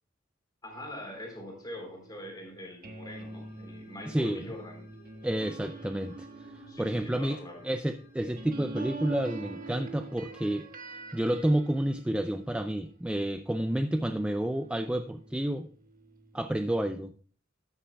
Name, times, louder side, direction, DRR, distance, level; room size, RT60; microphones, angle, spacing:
voice 1, 0.6-4.9 6.7-7.7, left 1 dB, 20° left, 1 dB, 3.5 m, -43 dB
sound 1, 0.7-13.3 13.7-16.7, right 2 dB, 45° right, 1.3 m, -46 dB
sound 2, 2.0-8.0, left 2 dB, 20° right, 5.8 m, -64 dB
sound 3, 3.0-10.0, left 3 dB, 55° left, 3.7 m, -61 dB
voice 2, 4.1-4.4 5.2-6.3 6.5-10.7 11.1-15.7 16.3-17.1, right 1 dB, 5° right, 8 dB, 0.3 m, -30 dB
14.0 x 9.9 x 2.3 m, 0.43 s
head